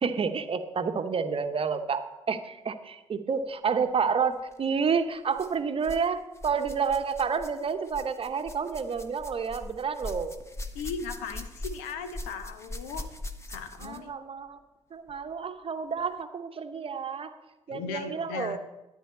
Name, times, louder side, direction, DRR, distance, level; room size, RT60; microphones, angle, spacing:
voice 1, 0.0-10.4 13.8-14.6 14.9-17.3 17.7-18.6, right 6 dB, 40° right, 9 dB, 1.0 m, -29 dB
sound 1, 4.4-4.6 5.3-6.1 6.3-14.1 15.1-15.2 16.0-16.1, left 1 dB, 20° left, 1.3 m, -41 dB
voice 2, 10.7-13.1 13.5-14.1 17.7-18.6, left 5 dB, 70° left, 9 dB, 0.9 m, -37 dB
12.5 x 10.0 x 4.2 m, 1.0 s
figure-of-eight pair, 40°, 15 cm